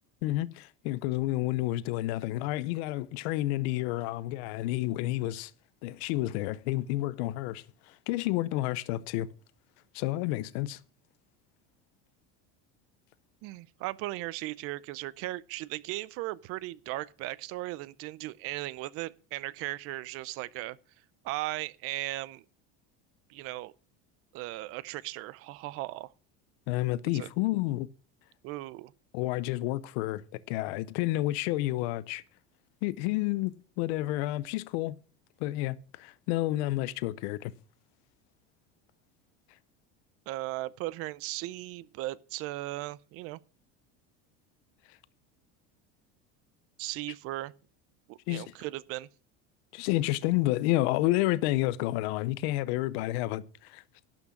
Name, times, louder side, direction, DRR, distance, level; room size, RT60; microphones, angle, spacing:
voice 1, 0.2-5.5 5.8-9.3 9.9-10.8 26.7-27.9 29.1-32.2 32.8-35.0 35.4-37.5 48.3-48.4 49.7-53.8, left 17 dB, 75° left, 0.7 m, -30 dB
voice 2, 13.4-20.8 21.2-22.4 23.3-23.7 24.3-26.1 27.1-27.3 28.4-28.9 40.3-43.4 46.8-47.5 48.1-49.1, right 17 dB, 45° right, 0.5 m, -37 dB
12.0 x 6.1 x 7.0 m
cardioid pair, 160°, 32 cm